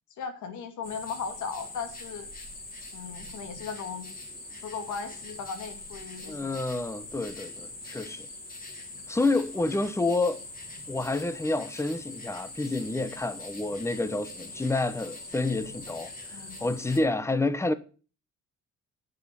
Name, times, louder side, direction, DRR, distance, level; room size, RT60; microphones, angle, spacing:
voice 1, 0.2-2.3 2.9-4.1 4.6-6.6 16.3-16.6, left 6 dB, 75° left, 2.3 m, -37 dB
sound 1, 0.8-17.0, left 2 dB, 30° left, 4.5 m, -43 dB
voice 2, 6.3-8.3 9.1-10.4 10.9-16.1 16.6-17.7, left 2 dB, 10° left, 1.0 m, -28 dB
9.3 x 6.3 x 7.5 m
cardioid pair, 90°, 30 cm